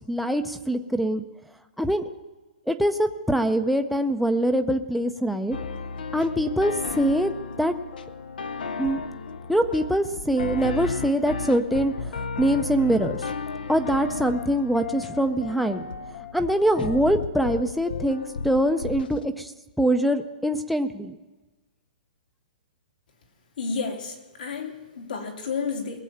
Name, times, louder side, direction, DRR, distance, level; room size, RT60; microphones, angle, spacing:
voice 1, 0.1-1.2 1.8-2.0 2.7-5.6 6.1-7.3 7.6-7.7 8.8-9.0 9.5-13.2 13.7-15.8 16.3-19.5 19.8-21.2, right 1 dB, ahead, 10 dB, 0.4 m, -23 dB
sound 1, 5.5-19.3, left 5 dB, 90° left, 0.7 m, -34 dB
voice 2, 23.6-26.0, left 5 dB, 75° left, 1 dB, 3.0 m, -31 dB
21.0 x 7.5 x 5.7 m, 1.2 s
hypercardioid pair, 170°, 5 cm